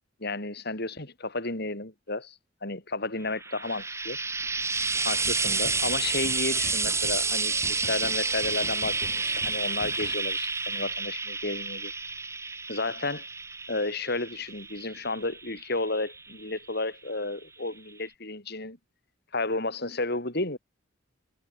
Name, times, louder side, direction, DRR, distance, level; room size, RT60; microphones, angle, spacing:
voice 1, 0.2-4.2 5.0-11.9 12.7-13.3 13.7-18.8 19.3-20.6, left 2 dB, 55° left, 6.6 m, -32 dB
Frying (food), 3.3-16.7 17.7-17.8, right 4 dB, 15° right, 1.6 m, -30 dB
sound 1, 4.9-10.2, left 1 dB, 15° left, 5.8 m, -46 dB
head